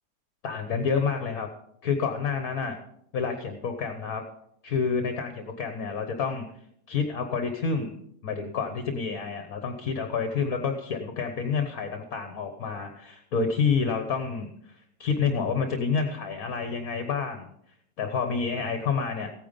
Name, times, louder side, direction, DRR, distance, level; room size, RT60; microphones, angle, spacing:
voice 1, 0.4-1.5 1.8-2.8 3.1-4.2 4.6-7.9 8.2-17.5 18.0-19.3, left 5 dB, 65° left, 5 dB, 1.6 m, -29 dB
15.5 x 9.3 x 5.2 m, 0.74 s
omnidirectional pair, 1.7 m